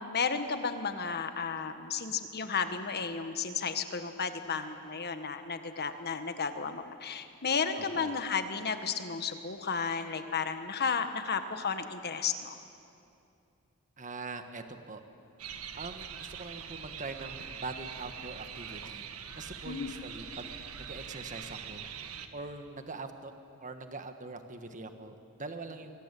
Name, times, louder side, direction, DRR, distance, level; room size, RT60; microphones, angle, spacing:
voice 1, 0.0-12.6 19.6-19.9, left 5 dB, 50° left, 8 dB, 1.5 m, -33 dB
voice 2, 7.8-8.1 14.0-15.0 15.7-19.0 19.4-20.5 20.8-21.8 22.3-23.3 23.6-25.9, right 3 dB, 35° right, 7 dB, 1.6 m, -43 dB
sound 1, 15.4-22.3, right 7 dB, 85° right, 1.5 m, -43 dB
24.5 x 22.0 x 8.6 m, 2.6 s
head